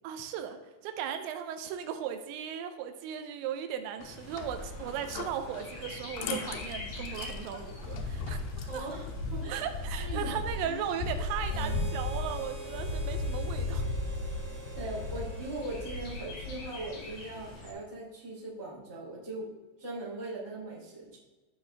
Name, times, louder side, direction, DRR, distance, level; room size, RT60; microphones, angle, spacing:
voice 1, 0.0-8.9 9.5-13.9, right 9 dB, 85° right, 7 dB, 3.1 m, -37 dB
sound 1, 4.0-9.2, left 6 dB, 80° left, 1.9 m, -44 dB
Bird, 4.0-17.7, left 3 dB, 60° left, 5.0 m, -37 dB
voice 2, 8.7-9.0 9.3-9.6 10.0-10.8 11.5-11.8 14.7-19.5 19.8-21.2, right 2 dB, 10° right, -6 dB, 2.0 m, -40 dB
Harmonica, 11.5-17.0, right 4 dB, 60° right, 4.4 m, -47 dB
14.0 x 5.8 x 3.4 m, 1.2 s
omnidirectional pair, 5.2 m